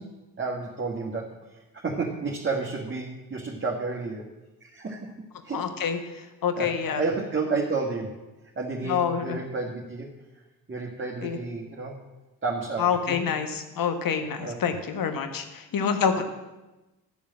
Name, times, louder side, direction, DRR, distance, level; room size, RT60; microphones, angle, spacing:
voice 1, 0.0-4.3 4.6-5.1 5.4-5.6 6.5-6.7 6.9-8.2 8.5-10.1 10.7-12.0 12.4-13.2 14.2-14.6, right 4 dB, 25° right, -3 dB, 1.7 m, -31 dB
voice 2, 5.5-6.0 6.4-7.0 8.8-9.4 11.2-11.4 12.8-16.2, left 7 dB, 45° left, 8 dB, 1.3 m, -27 dB
9.4 x 7.2 x 7.4 m, 1.1 s
figure-of-eight pair, 40°, 48 cm